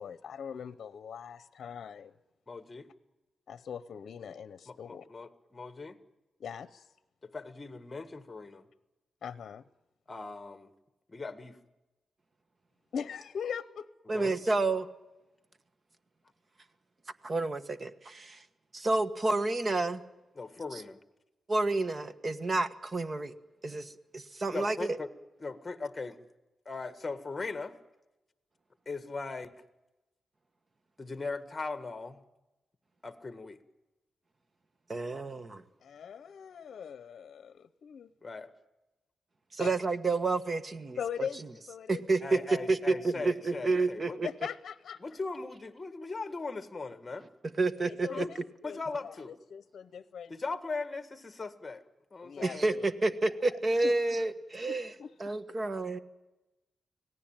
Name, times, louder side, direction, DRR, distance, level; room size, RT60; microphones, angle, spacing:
voice 1, 0.0-2.1 3.5-5.0 6.4-6.9 9.2-9.6 12.9-13.9 35.8-38.1 39.6-39.7 41.0-42.0 42.3-42.5 44.2-45.0 47.8-50.4 52.2-52.8 53.8-53.9 54.7-55.1, left 7 dB, 70° left, 15 dB, 0.8 m, -41 dB
voice 2, 2.5-2.9 4.7-6.0 7.2-8.7 10.1-10.7 11.1-11.6 14.1-14.3 20.3-21.0 24.5-25.1 25.4-26.2 26.6-27.8 28.8-29.6 31.0-32.2 33.0-33.6 38.2-38.5 42.2-44.2 45.0-47.3 48.1-48.3 48.6-49.3 50.3-51.8 52.1-52.7, left 3 dB, 25° left, 11 dB, 1.7 m, -39 dB
voice 3, 14.1-14.9 17.2-18.4 18.7-20.0 21.5-23.3 23.6-25.0 34.9-35.6 39.5-41.3 41.9-44.3 47.6-48.3 52.4-54.9 55.2-56.0, right 3 dB, 35° right, 12 dB, 1.4 m, -30 dB
25.5 x 18.0 x 9.0 m, 1.0 s
wide cardioid pair, 115°, 0 cm